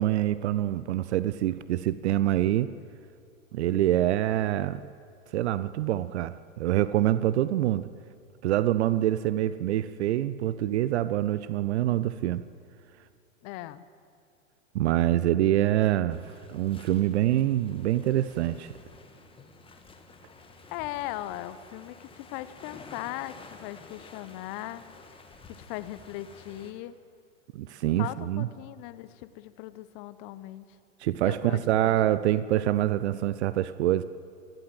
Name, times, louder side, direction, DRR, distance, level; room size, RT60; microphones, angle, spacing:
voice 1, 0.0-2.7 3.5-4.8 5.3-7.9 8.4-12.4 14.7-18.7 27.5-28.5 31.0-34.0, right 13 dB, 55° right, 15 dB, 0.7 m, -25 dB
voice 2, 13.4-13.9 20.7-24.9 25.5-27.0 28.0-30.7 31.2-32.3, left 15 dB, 40° left, 14 dB, 1.0 m, -39 dB
sound 1, 16.1-26.7, left 3 dB, 15° left, 1.8 m, -51 dB
28.0 x 12.0 x 7.8 m, 2.3 s
hypercardioid pair, 105°, 40 cm